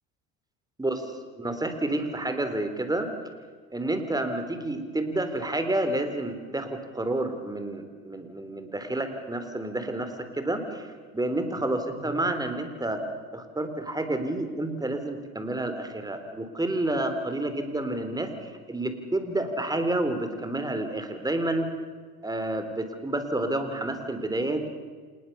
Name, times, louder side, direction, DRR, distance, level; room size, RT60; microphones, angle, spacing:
voice 1, 1.4-3.1 3.7-10.9 11.1-13.0 13.3-21.7 22.2-24.7, right 1 dB, 10° right, 8 dB, 3.7 m, -29 dB
27.0 x 20.0 x 7.0 m, 1.5 s
supercardioid pair, 85°, 33 cm